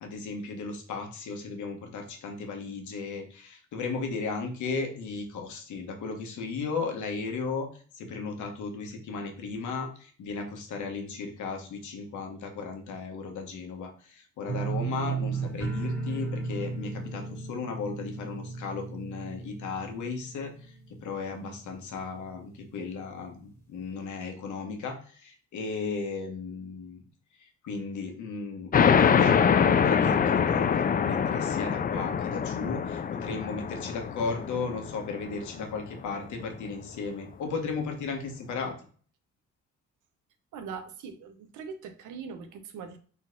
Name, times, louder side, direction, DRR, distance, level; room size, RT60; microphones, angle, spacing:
voice 1, 0.0-7.7 7.9-20.5 20.9-27.0 27.4-38.7, left 4 dB, 75° left, 4 dB, 1.3 m, -35 dB
sound 1, 14.5-21.3 21.6-22.2 22.5-22.6, right 4 dB, 10° left, 1.7 m, -35 dB
sound 2, 28.7-35.9, left 7 dB, 30° left, 0.4 m, -24 dB
voice 2, 40.5-43.0, right 6 dB, 85° right, 8 dB, 0.8 m, -41 dB
4.1 x 4.0 x 2.4 m, 0.44 s
cardioid pair, 90°, 30 cm